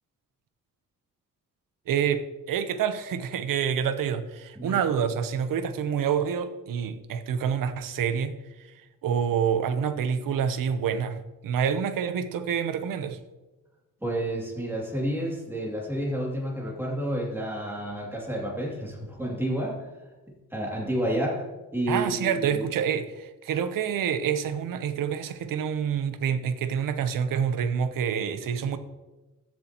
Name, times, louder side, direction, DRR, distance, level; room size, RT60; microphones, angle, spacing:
voice 1, 1.9-8.3 9.0-13.2 21.9-28.8, right 7 dB, 85° right, 11 dB, 0.8 m, -27 dB
voice 2, 14.0-19.9 20.5-21.4 21.7-22.6, right 1 dB, 5° right, -3 dB, 2.6 m, -30 dB
14.5 x 7.6 x 3.0 m, 1.1 s
wide cardioid pair, 140°, 32 cm